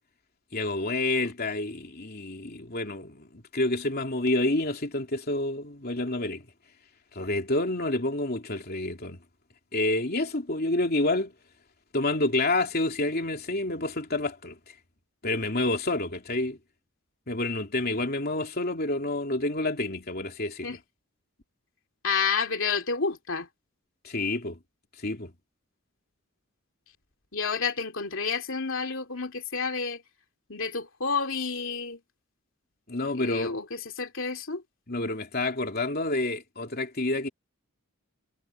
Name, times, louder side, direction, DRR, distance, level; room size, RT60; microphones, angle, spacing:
voice 1, 0.5-6.4 7.1-9.2 9.7-11.3 11.9-14.5 15.2-16.6 17.3-20.8 24.0-24.6 25.0-25.3 32.9-33.5 34.9-37.3, left 2 dB, 45° left, 3.1 m, -28 dB
voice 2, 22.0-23.5 27.3-30.0 30.5-32.0 33.1-34.6, left 5 dB, 60° left, 3.2 m, -30 dB
head